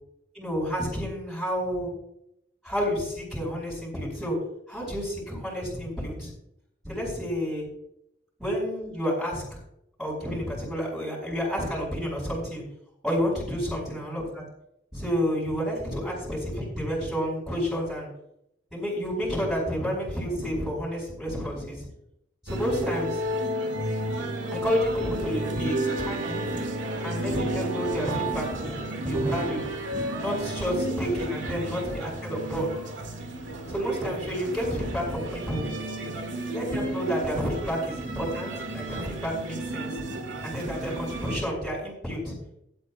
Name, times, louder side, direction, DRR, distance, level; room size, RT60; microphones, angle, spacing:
voice 1, 0.3-1.9 2.6-4.4 4.7-6.3 6.8-7.7 8.4-9.6 10.0-12.6 13.0-14.4 14.9-18.1 18.7-21.9 22.4-23.2 24.5-26.6 27.0-29.6 30.1-32.7 33.7-35.7 36.5-40.0 40.4-42.4, equal, ahead, -7 dB, 4.8 m, -30 dB
sound 1, 22.5-41.4, right 1 dB, 85° right, 2.0 m, -32 dB
17.0 x 11.5 x 2.4 m, 0.77 s
head